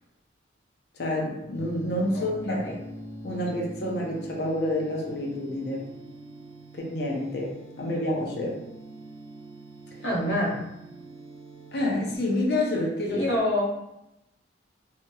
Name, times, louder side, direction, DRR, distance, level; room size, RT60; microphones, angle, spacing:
voice 1, 1.0-2.7 3.2-5.9 6.7-8.6 11.7-13.2, left 1 dB, 55° left, -1 dB, 0.6 m, -28 dB
sound 1, 1.5-12.2, right 1 dB, 60° right, 0.6 m, -43 dB
voice 2, 2.1-2.8 10.0-10.6 13.1-13.6, left 1 dB, 70° left, -4 dB, 0.9 m, -27 dB
2.8 x 2.8 x 2.3 m, 0.87 s
head